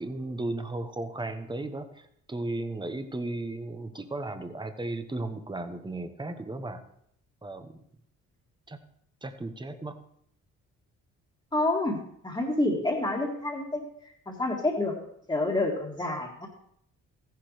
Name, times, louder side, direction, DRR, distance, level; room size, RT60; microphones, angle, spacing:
voice 1, 0.0-6.8 7.4-7.7 8.7-8.8 9.2-10.0, right 2 dB, 15° right, 9 dB, 1.1 m, -35 dB
voice 2, 11.5-13.8 14.3-15.0 15.3-16.5, left 2 dB, 15° left, -6 dB, 2.0 m, -28 dB
14.5 x 10.5 x 3.3 m, 0.71 s
cardioid pair, 90°, 30 cm